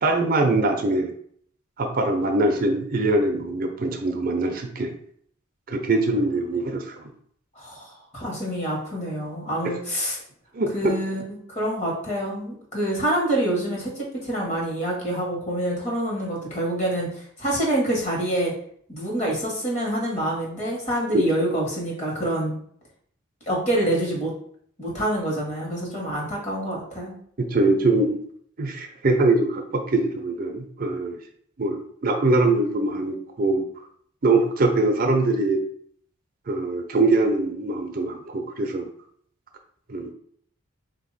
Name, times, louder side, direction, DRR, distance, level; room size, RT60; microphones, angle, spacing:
voice 1, 0.0-1.1 1.8-4.9 5.7-7.1 10.5-10.9 21.1-21.2 27.4-28.2 28.6-31.2 31.6-33.6 34.2-35.6 36.5-38.9 39.9-40.1, right 2 dB, 40° right, 4 dB, 0.5 m, -22 dB
voice 2, 7.5-10.2 10.7-18.5 18.9-22.6 23.5-24.3 24.8-27.1, right 1 dB, 35° left, -3 dB, 1.5 m, -26 dB
3.9 x 2.8 x 4.0 m, 0.62 s
head